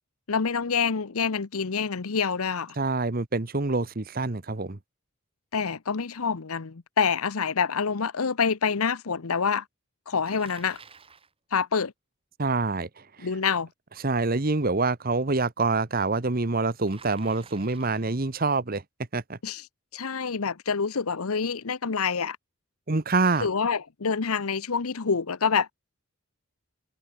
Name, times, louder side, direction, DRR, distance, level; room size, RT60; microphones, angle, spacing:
voice 1, 0.3-2.7 5.5-9.6 10.1-10.8 11.5-11.9 13.2-13.7 19.4-19.6 19.9-22.4 23.4-25.7, left 5 dB, 80° left, 0.9 m, -27 dB
voice 2, 2.8-4.8 12.4-12.9 13.2-13.3 14.0-18.8 19.1-19.4 22.9-23.5, right 3 dB, 40° right, 1.1 m, -26 dB
Bicycle, 10.2-11.3 16.9-18.1, right 5 dB, 25° right, 5.1 m, -51 dB
head